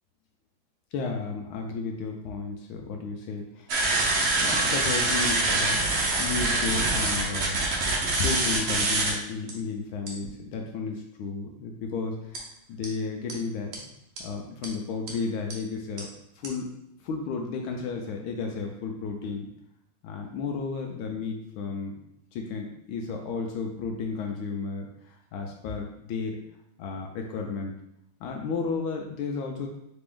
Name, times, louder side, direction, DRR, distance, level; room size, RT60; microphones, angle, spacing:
voice 1, 0.9-3.9 4.4-5.8 6.2-7.6 8.2-13.8 14.2-16.1 16.4-16.7 17.0-19.5 20.0-22.0 22.3-26.4 26.8-27.7 28.2-29.7, left 4 dB, 80° left, 2 dB, 1.4 m, -33 dB
sound 1, 3.7-9.1 9.5-9.6 10.1-10.3 12.3-12.4 12.8-12.9 13.3-13.4 13.7-13.8 14.2-14.3 14.6-14.7 15.1-15.2 15.5-15.6 16.0-16.1 16.4-16.5, right 2 dB, 90° right, 0.5 m, -25 dB
4.1 x 3.3 x 3.5 m, 0.78 s
omnidirectional pair, 2.3 m